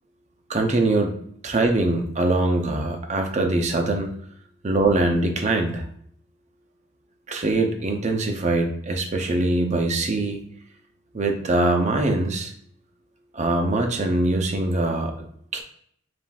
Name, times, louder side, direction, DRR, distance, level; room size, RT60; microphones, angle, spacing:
voice 1, 0.5-1.2 1.4-4.1 4.6-5.8 7.3-10.4 11.1-12.5 13.3-15.1 15.5-15.6, right 2 dB, 30° right, 4 dB, 0.5 m, -22 dB
7.1 x 2.5 x 2.3 m, 0.65 s
head